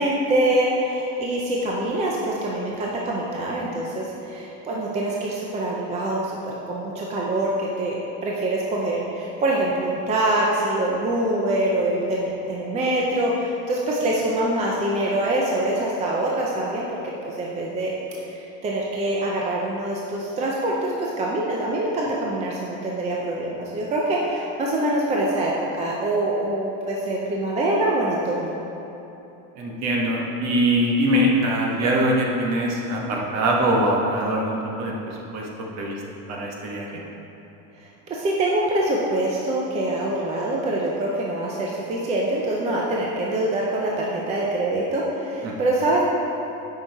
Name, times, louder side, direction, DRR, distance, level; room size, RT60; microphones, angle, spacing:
voice 1, 0.0-17.9 18.3-28.5 37.8-46.0, right 1 dB, 20° right, -3 dB, 0.4 m, -24 dB
voice 2, 29.5-35.5 35.7-36.0 36.3-37.0 45.4-45.6, right 1 dB, 45° right, -2 dB, 1.3 m, -23 dB
8.0 x 5.5 x 4.6 m, 3.0 s
cardioid pair, 175°, 37 cm